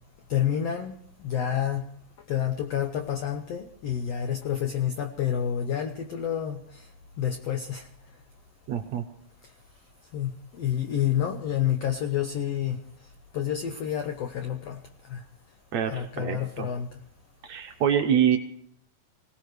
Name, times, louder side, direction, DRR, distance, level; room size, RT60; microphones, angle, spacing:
voice 1, 0.3-1.9 2.3-6.9 7.2-7.9 10.1-10.3 10.6-12.8 13.3-14.8 15.1-15.2 15.9-16.9, left 9 dB, 80° left, 6 dB, 1.4 m, -29 dB
voice 2, 8.7-9.0 15.7-16.7 17.4-18.4, right 8 dB, 70° right, 5 dB, 1.9 m, -25 dB
25.0 x 17.5 x 3.3 m, 0.64 s
omnidirectional pair, 4.0 m